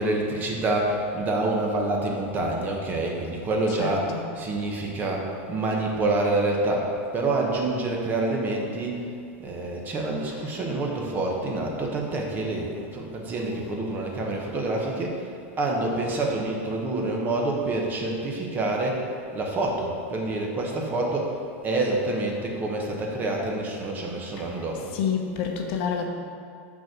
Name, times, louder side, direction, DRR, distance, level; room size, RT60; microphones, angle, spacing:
voice 1, 0.0-9.1 9.4-15.3 15.6-25.0, right 2 dB, 25° right, 0 dB, 1.1 m, -27 dB
voice 2, 3.7-4.2 10.2-10.4 13.5-13.7 24.3-26.1, left 7 dB, 55° left, 3 dB, 0.9 m, -30 dB
6.0 x 4.5 x 6.1 m, 2.3 s
supercardioid pair, 140°, 7 cm